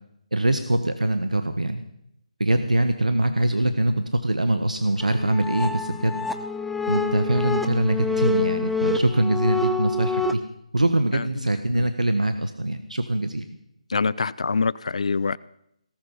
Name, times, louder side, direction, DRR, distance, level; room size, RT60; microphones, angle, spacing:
voice 1, 0.3-1.8 2.4-6.2 6.9-10.4 10.7-13.5, right 1 dB, 85° right, 8 dB, 1.3 m, -23 dB
sound 1, 5.0-10.3, left 3 dB, ahead, 0.6 m, -27 dB
voice 2, 13.9-15.4, left 4 dB, 60° left, 21 dB, 0.6 m, -25 dB
18.0 x 12.5 x 5.6 m, 0.78 s
figure-of-eight pair, 150°, 4 cm